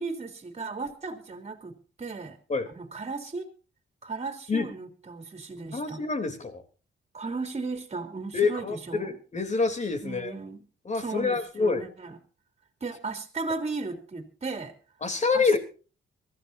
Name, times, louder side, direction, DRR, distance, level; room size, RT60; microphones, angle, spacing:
voice 1, 0.0-1.7 2.0-2.4 2.7-3.5 4.0-6.0 7.1-9.2 10.0-10.6 10.9-12.2 12.8-14.7 15.3-15.5, right 3 dB, 30° right, 6 dB, 3.3 m, -35 dB
voice 2, 5.7-6.6 8.3-10.3 10.8-11.8 15.0-15.6, left 4 dB, 35° left, 7 dB, 3.2 m, -27 dB
24.0 x 15.0 x 2.7 m, 0.36 s
cardioid pair, 125°, 21 cm